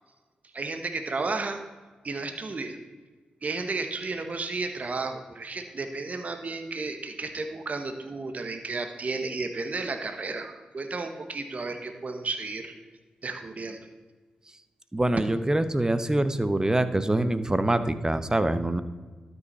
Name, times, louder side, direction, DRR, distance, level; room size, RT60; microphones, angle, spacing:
voice 1, 0.5-1.6 2.0-2.8 3.4-12.7 13.2-13.8, right 3 dB, 45° right, 6 dB, 1.0 m, -33 dB
voice 2, 14.9-18.8, right 1 dB, 20° right, 12 dB, 0.8 m, -25 dB
12.5 x 5.5 x 4.2 m, 1.4 s
supercardioid pair, 40°, 3 cm